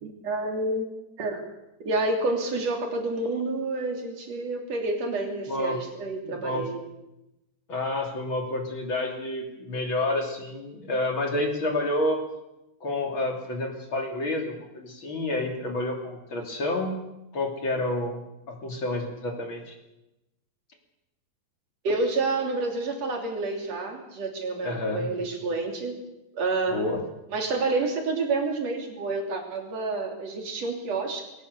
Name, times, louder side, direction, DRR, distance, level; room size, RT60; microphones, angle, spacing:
voice 1, 0.0-0.9 1.2-1.4 1.8-6.8 21.8-26.0 26.3-26.8 27.3-31.3, right 3 dB, 45° right, 2 dB, 4.1 m, -29 dB
voice 2, 5.5-5.8 6.2-6.6 7.7-12.2 12.8-17.0 17.3-19.7 24.6-25.1 26.7-27.0, left 2 dB, 35° left, 2 dB, 3.4 m, -29 dB
22.5 x 18.0 x 6.9 m, 0.94 s
omnidirectional pair, 4.3 m